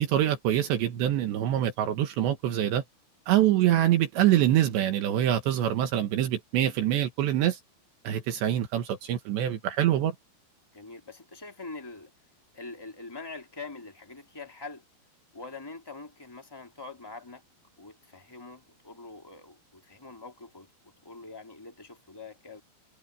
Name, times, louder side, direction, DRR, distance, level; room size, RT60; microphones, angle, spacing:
voice 1, 0.0-2.8 3.3-7.6 8.1-10.2, right 12 dB, 75° right, 3.6 m, -25 dB
voice 2, 10.7-12.1 12.5-14.8 15.3-17.4 17.8-20.7 21.0-22.6, left 3 dB, 5° left, 2.4 m, -44 dB
omnidirectional pair, 5.3 m